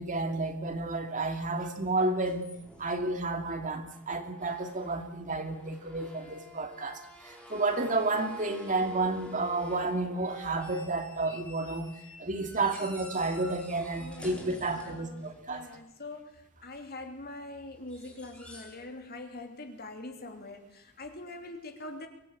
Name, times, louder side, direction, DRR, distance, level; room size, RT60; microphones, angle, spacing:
voice 1, 0.0-2.5 2.8-11.9 12.2-15.7, right 2 dB, 35° right, 5 dB, 2.5 m, -31 dB
sound 1, 2.0-3.3 3.9-4.0 4.4-5.1 5.4-15.7 17.8-18.8 19.1-19.4 21.2-21.3, equal, 5° left, 4.9 m, -49 dB
voice 2, 14.0-22.1, left 2 dB, 45° left, 5 dB, 3.0 m, -44 dB
24.0 x 18.5 x 8.9 m, 0.84 s
head